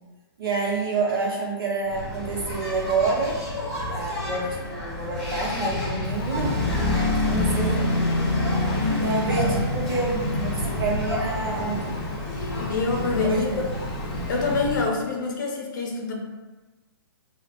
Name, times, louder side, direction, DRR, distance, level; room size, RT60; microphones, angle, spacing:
voice 1, 0.4-3.4 3.9-6.6 7.2-7.7 9.0-12.0 13.2-13.7, right 4 dB, 65° right, -2 dB, 1.0 m, -28 dB
Engine, 1.9-14.9, left 1 dB, ahead, 0.8 m, -27 dB
Engine 2, 6.0-14.9, left 2 dB, 20° left, 0.3 m, -38 dB
voice 2, 7.3-7.9 8.8-9.1 12.4-13.6 14.3-16.1, left 4 dB, 50° left, 0 dB, 0.7 m, -27 dB
5.0 x 2.4 x 2.5 m, 1.2 s
hypercardioid pair, 165°, 13 cm